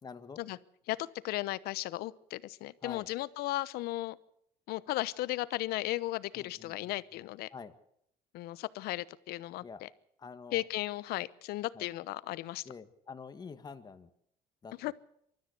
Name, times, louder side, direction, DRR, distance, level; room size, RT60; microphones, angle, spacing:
voice 1, 0.0-0.4 2.8-3.1 6.3-7.0 7.5-7.7 9.6-9.8 10.2-10.6 11.7-11.9 12.6-14.1 14.6-14.7, left 5 dB, 25° left, 9 dB, 1.6 m, -47 dB
voice 2, 0.9-4.2 4.7-7.5 8.3-9.9 10.5-12.7 14.8-14.9, left 17 dB, 75° left, 17 dB, 1.0 m, -36 dB
24.5 x 13.5 x 8.2 m, 0.72 s
cardioid pair, 120°, 16 cm